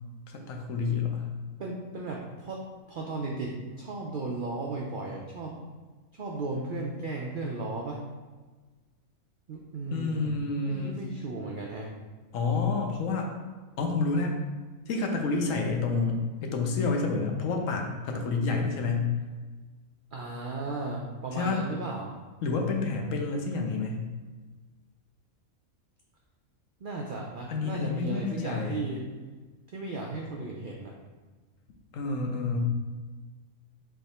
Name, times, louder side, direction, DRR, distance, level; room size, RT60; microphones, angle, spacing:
voice 1, 0.3-1.3 9.9-11.0 12.3-13.3 13.8-14.3 14.9-19.1 21.3-21.6 22.4-24.1 27.5-28.8 31.9-32.6, left 4 dB, 70° left, 2 dB, 1.0 m, -29 dB
voice 2, 1.6-2.6 2.9-5.6 6.1-8.0 9.5-10.4 10.6-11.9 20.1-22.1 23.5-23.7 26.8-29.0 29.7-30.9, right 2 dB, 70° right, -1 dB, 0.4 m, -35 dB
3.5 x 3.4 x 4.1 m, 1.3 s
omnidirectional pair, 1.5 m